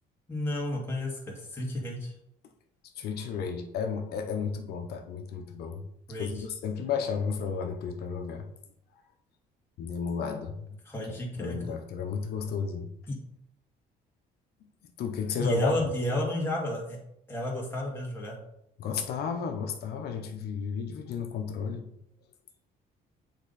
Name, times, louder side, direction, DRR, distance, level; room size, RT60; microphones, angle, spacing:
voice 1, 0.3-2.1 6.1-6.3 10.9-11.6 13.1-13.2 15.4-17.0 17.3-18.4, left 1 dB, 15° left, -3 dB, 2.2 m, -31 dB
voice 2, 2.9-5.8 6.2-8.5 9.8-10.7 11.0-12.9 15.0-15.7 18.8-21.9, left 6 dB, 70° left, 5 dB, 0.9 m, -33 dB
8.1 x 3.6 x 4.1 m, 0.76 s
cardioid pair, 110°, 17 cm